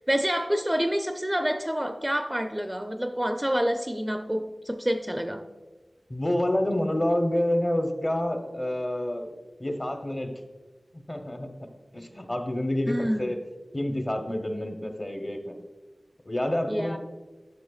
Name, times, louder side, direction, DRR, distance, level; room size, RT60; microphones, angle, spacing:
voice 1, 0.0-5.5 12.9-13.3 16.7-17.0, equal, 10° right, 5 dB, 0.4 m, -27 dB
voice 2, 6.1-9.3 9.6-10.3 10.9-11.5 11.9-13.4 13.7-15.6 16.3-17.0, left 1 dB, 35° left, 5 dB, 0.9 m, -28 dB
9.4 x 6.2 x 2.4 m, 1.3 s
wide cardioid pair, 50°, 0 cm